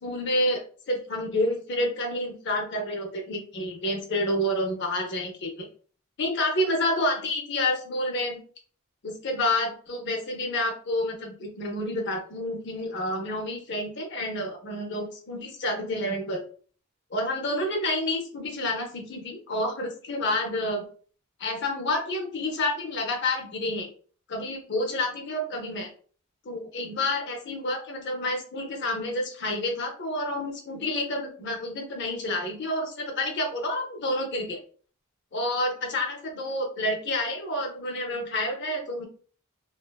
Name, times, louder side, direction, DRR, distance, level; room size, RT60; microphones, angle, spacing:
voice 1, 0.0-5.7 6.2-8.4 9.0-16.4 17.1-20.8 21.4-23.9 24.3-25.9 26.4-34.6 35.3-39.1, left 1 dB, 55° left, 3 dB, 0.6 m, -29 dB
2.5 x 2.3 x 2.2 m, 0.43 s
head